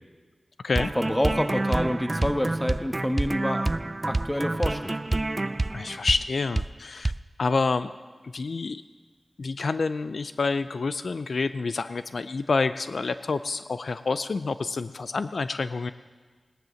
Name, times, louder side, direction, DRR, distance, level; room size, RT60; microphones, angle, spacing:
sound 1, 0.7-6.3 6.6-6.7 7.0-7.2, right 2 dB, 35° right, 0.3 m, -28 dB
voice 1, 0.9-3.6 4.1-4.9, left 1 dB, 15° left, 7 dB, 1.2 m, -27 dB
voice 2, 5.7-7.1 7.4-7.9 8.2-8.8 9.4-15.9, left 4 dB, 75° left, 12 dB, 0.4 m, -28 dB
17.5 x 10.5 x 6.4 m, 1.5 s
cardioid pair, 50°, 0 cm